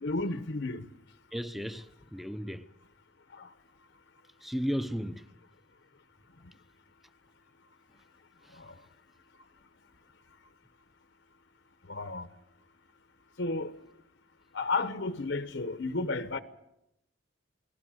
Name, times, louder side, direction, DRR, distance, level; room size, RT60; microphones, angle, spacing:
voice 1, 0.0-0.8 3.3-3.5 8.5-8.7 11.9-12.3 13.4-13.7 14.5-16.4, left 3 dB, 65° left, 1.0 m, -32 dB
voice 2, 1.3-2.7 4.4-5.3 8.4-8.6, equal, ahead, 0.8 m, -35 dB
29.0 x 19.0 x 6.3 m
head